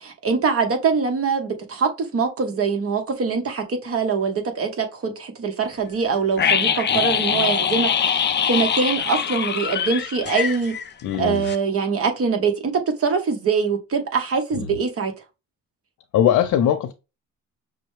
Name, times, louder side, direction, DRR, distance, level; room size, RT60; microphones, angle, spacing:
voice 1, 0.0-10.7 11.2-12.7 13.0-15.1, right 5 dB, 50° right, 1.2 m, -23 dB
sound 1, 6.4-11.2 11.4-11.6, left 7 dB, 35° left, 0.5 m, -23 dB
voice 2, 11.0-11.5 14.5-14.7 16.1-16.9, left 10 dB, 75° left, 0.7 m, -20 dB
6.0 x 2.2 x 3.2 m
cardioid pair, 90°, 30 cm